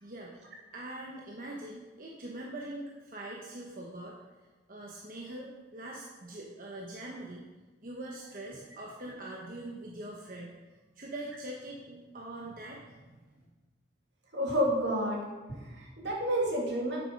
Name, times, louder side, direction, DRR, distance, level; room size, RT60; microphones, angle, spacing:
voice 1, 0.0-0.3 0.7-4.1 4.7-7.4 7.8-10.5 11.0-13.4, right 1 dB, 45° right, -2 dB, 1.0 m, -43 dB
voice 2, 14.3-15.2 15.5-17.0, equal, 75° right, -2 dB, 2.5 m, -30 dB
8.2 x 7.3 x 5.3 m, 1.2 s
head